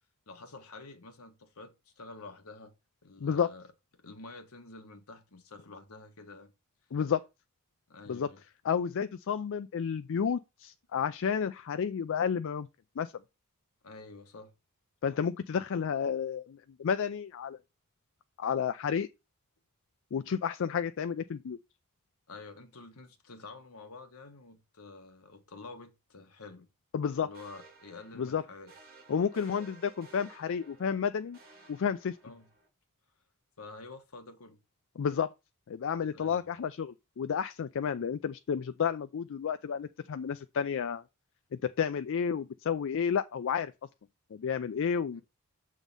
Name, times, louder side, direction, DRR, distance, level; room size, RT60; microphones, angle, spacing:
voice 1, 0.3-2.7 3.0-3.7 4.0-6.5 7.9-8.4 13.8-14.5 22.3-26.7 27.2-28.7 32.2-32.5 33.6-34.6 36.1-36.5 45.1-45.2, left 3 dB, 80° left, 1.3 m, -49 dB
voice 2, 3.2-3.5 6.9-7.2 8.1-8.3 8.6-12.7 13.0-13.1 15.0-17.6 18.4-19.1 20.1-21.6 26.9-27.3 28.2-28.4 29.1-31.4 31.7-32.2 35.0-35.3 35.7-41.0 41.5-43.7 44.3-45.2, left 7 dB, 60° left, 0.4 m, -31 dB
sound 1, 27.3-32.7, right 4 dB, 45° right, 2.2 m, -56 dB
7.2 x 3.7 x 5.2 m
head